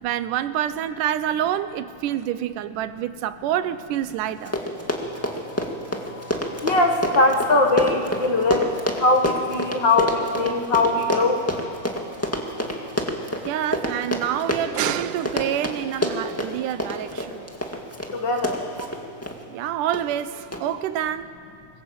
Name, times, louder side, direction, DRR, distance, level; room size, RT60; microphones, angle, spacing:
voice 1, 0.0-4.5 13.5-17.5 19.5-21.3, right 11 dB, 85° right, 12 dB, 2.3 m, -27 dB
Run, 4.1-4.2 4.4-19.4 19.9-20.2 20.5-20.6, left 1 dB, 5° left, 1.4 m, -27 dB
voice 2, 4.9-5.6 6.0-8.7 9.0-11.4 18.1-18.6, left 2 dB, 45° left, 3 dB, 1.7 m, -21 dB
26.0 x 21.0 x 7.7 m, 2.5 s
omnidirectional pair, 3.7 m